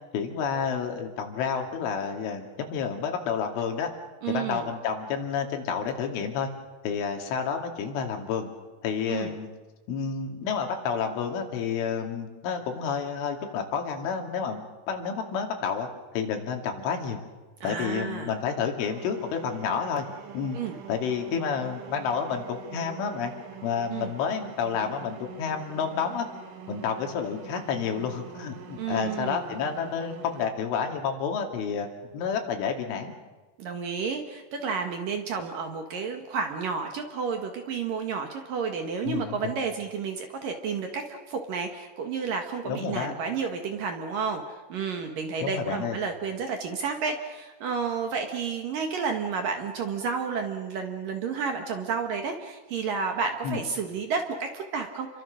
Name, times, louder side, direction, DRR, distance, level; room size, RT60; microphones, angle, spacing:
voice 1, 0.1-3.9 4.3-6.5 6.8-8.5 8.8-9.5 9.9-17.2 17.6-20.0 20.3-20.6 20.9-23.3 23.6-26.3 26.7-31.9 32.1-33.1 39.0-39.5 42.6-43.1 45.4-46.0 53.4-53.6, left 6 dB, 80° left, 3 dB, 4.9 m, -30 dB
voice 2, 4.2-4.7 9.1-9.3 17.6-18.3 20.5-20.8 23.9-24.1 28.8-29.4 33.6-55.1, right 5 dB, 60° right, 4 dB, 2.7 m, -31 dB
sound 1, 18.9-30.4, right 8 dB, 80° right, 4.2 m, -45 dB
29.5 x 23.0 x 6.5 m, 1.2 s
omnidirectional pair, 5.5 m